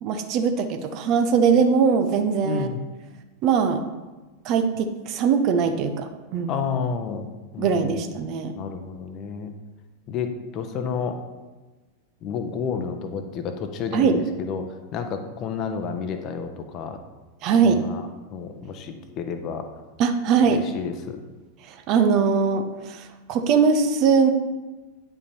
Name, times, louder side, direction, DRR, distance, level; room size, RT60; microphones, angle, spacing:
voice 1, 0.0-2.7 3.4-3.8 4.4-6.5 7.6-8.5 13.9-14.2 17.4-17.8 20.0-20.6 21.7-24.3, right 6 dB, 40° right, 7 dB, 0.8 m, -21 dB
voice 2, 2.4-2.8 6.5-8.0 8.6-9.5 10.1-11.2 12.2-17.0 17.6-18.0 18.3-19.6 20.5-21.2, left 6 dB, 35° left, 7 dB, 0.9 m, -30 dB
9.6 x 5.7 x 4.4 m, 1.2 s
figure-of-eight pair, 90°, 0 cm